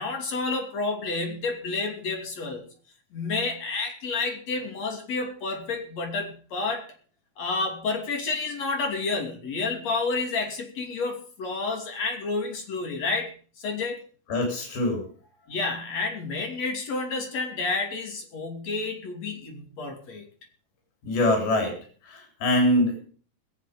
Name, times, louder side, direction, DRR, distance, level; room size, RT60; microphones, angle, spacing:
voice 1, 0.0-2.6 3.1-6.9 7.4-13.3 13.6-14.0 15.5-20.3, left 3 dB, 50° left, 2 dB, 3.9 m, -30 dB
voice 2, 14.3-15.1 21.0-21.8 22.0-23.0, left 1 dB, 90° left, 3 dB, 5.8 m, -23 dB
21.5 x 7.8 x 5.3 m, 0.42 s
omnidirectional pair, 4.3 m